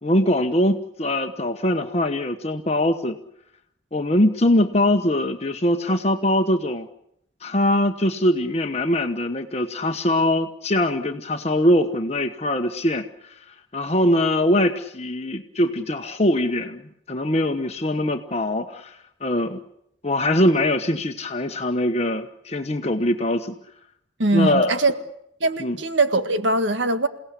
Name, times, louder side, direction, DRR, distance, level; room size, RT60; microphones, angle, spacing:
voice 1, 0.0-3.2 3.9-6.9 7.4-13.4 13.7-16.8 17.1-19.6 20.0-23.6 24.3-24.8 25.6-25.8, left 1 dB, 35° left, 1.1 m, -22 dB
voice 2, 24.2-24.9 25.4-27.1, right 2 dB, 85° right, 1.8 m, -21 dB
28.5 x 17.5 x 8.3 m
head